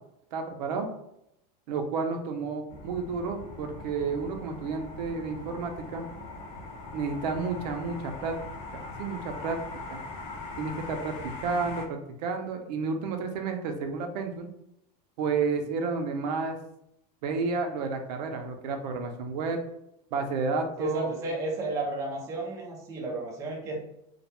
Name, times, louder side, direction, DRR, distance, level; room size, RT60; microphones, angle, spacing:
voice 1, 0.3-0.9 1.7-6.1 6.9-8.3 9.0-9.6 9.9-10.0 10.6-14.5 15.2-16.6 17.2-19.6 20.1-21.1, right 4 dB, 80° right, 5 dB, 0.5 m, -31 dB
sound 1, 2.7-11.9, left 3 dB, 55° left, 0.6 m, -41 dB
voice 2, 20.8-23.8, right 2 dB, 15° right, -2 dB, 0.3 m, -32 dB
2.2 x 2.1 x 2.9 m, 0.80 s
supercardioid pair, 160°, 21 cm